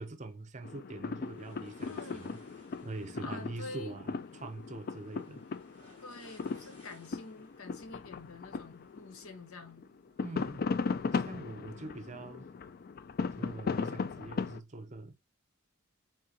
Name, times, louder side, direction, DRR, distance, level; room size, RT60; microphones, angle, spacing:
voice 1, 0.0-2.4 2.8-5.4 6.6-6.7 10.1-10.7 11.1-12.5 13.4-15.2, right 2 dB, 35° right, 0.6 m, -44 dB
sound 1, 0.6-9.4 9.7-14.6, left 4 dB, 45° left, 0.3 m, -37 dB
sound 2, 1.2-9.6, left 1 dB, 25° left, 2.2 m, -61 dB
voice 2, 1.8-2.4 3.2-4.0 5.1-5.2 6.0-9.9, left 3 dB, 80° left, 0.9 m, -47 dB
3.9 x 3.7 x 2.7 m
head